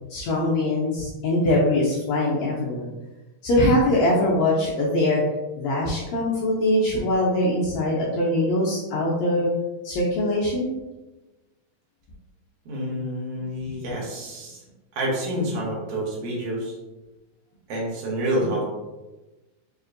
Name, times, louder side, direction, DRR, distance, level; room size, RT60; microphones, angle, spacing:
voice 1, 0.1-2.9 3.4-5.2 5.6-9.5 9.8-10.7, left 1 dB, 80° left, -5 dB, 1.6 m, -22 dB
voice 2, 12.6-14.6 14.9-16.8 17.7-18.6, equal, 65° right, -3 dB, 1.6 m, -28 dB
5.1 x 2.5 x 2.5 m, 1.1 s
omnidirectional pair, 3.8 m